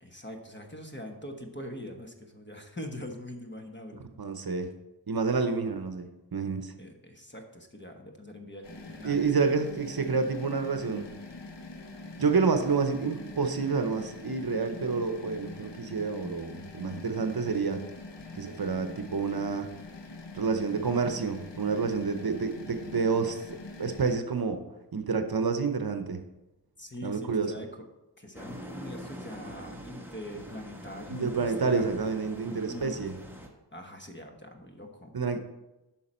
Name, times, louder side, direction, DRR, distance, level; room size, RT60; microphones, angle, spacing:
voice 1, 0.0-4.2 6.8-9.2 18.3-18.5 22.2-22.3 26.8-27.9 28.2-31.9 32.7-33.0 33.7-35.4, left 1 dB, 25° left, 3 dB, 1.1 m, -43 dB
voice 2, 4.2-4.7 5.1-6.7 9.0-11.1 12.2-17.8 18.3-19.7 20.3-23.4 23.8-24.6 24.9-26.2 27.0-27.5 31.1-33.1 35.1-35.4, right 4 dB, 60° right, 7 dB, 0.8 m, -28 dB
sound 1, 8.6-24.2, left 3 dB, 85° left, 0.9 m, -44 dB
sound 2, 28.3-33.5, equal, 5° right, 1.2 m, -44 dB
9.3 x 5.9 x 4.3 m, 0.99 s
wide cardioid pair, 70°, 42 cm